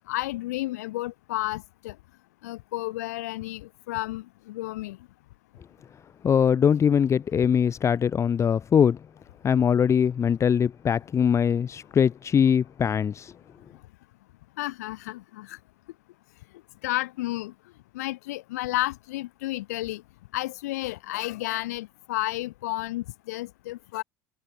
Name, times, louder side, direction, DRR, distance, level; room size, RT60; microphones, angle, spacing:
voice 1, 0.1-1.9 2.4-5.0 14.6-15.6 16.8-17.5 17.9-20.0 20.3-24.0, left 18 dB, 75° left, 1.6 m, -32 dB
voice 2, 6.2-9.0 9.4-13.3, left 7 dB, 35° left, 1.4 m, -22 dB
hypercardioid pair, 80°, 9 cm